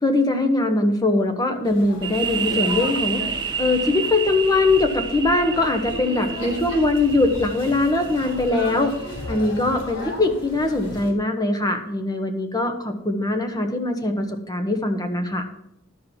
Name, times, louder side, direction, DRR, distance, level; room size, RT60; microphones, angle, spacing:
voice 1, 0.0-3.2 3.6-8.9 9.3-15.5, left 2 dB, 20° left, 5 dB, 1.0 m, -21 dB
sound 1, 1.6-11.1, left 1 dB, 85° left, 3.7 m, -35 dB
sound 2, 2.0-9.5, right 6 dB, 20° right, 0.6 m, -30 dB
12.0 x 4.7 x 5.7 m, 0.77 s
head